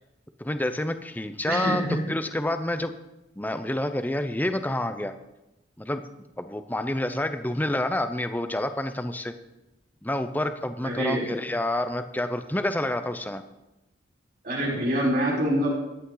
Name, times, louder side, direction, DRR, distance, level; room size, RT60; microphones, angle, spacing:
voice 1, 0.4-1.8 2.1-2.9 3.4-5.1 5.8-6.0 6.4-9.3 10.0-13.4, left 1 dB, 10° left, 9 dB, 0.7 m, -28 dB
voice 2, 1.5-2.0 10.8-11.3 14.4-15.7, right 1 dB, 55° right, -4 dB, 4.8 m, -25 dB
14.0 x 11.5 x 3.9 m, 0.94 s
head